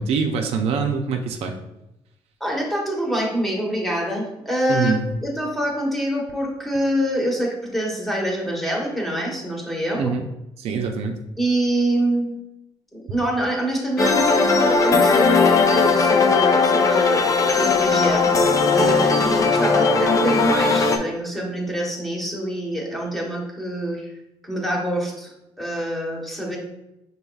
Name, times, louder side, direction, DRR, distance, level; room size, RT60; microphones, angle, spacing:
voice 1, 0.0-1.6 4.7-5.0 9.9-10.2 10.6-11.2, right 5 dB, 75° right, 4 dB, 0.5 m, -24 dB
voice 2, 2.4-10.2 11.4-12.4 12.9-24.1 24.4-26.6, right 1 dB, ahead, -2 dB, 1.2 m, -25 dB
sound 1, 14.0-21.0, left 4 dB, 30° left, 0.5 m, -18 dB
5.4 x 4.0 x 2.4 m, 0.89 s
cardioid pair, 115°, 10 cm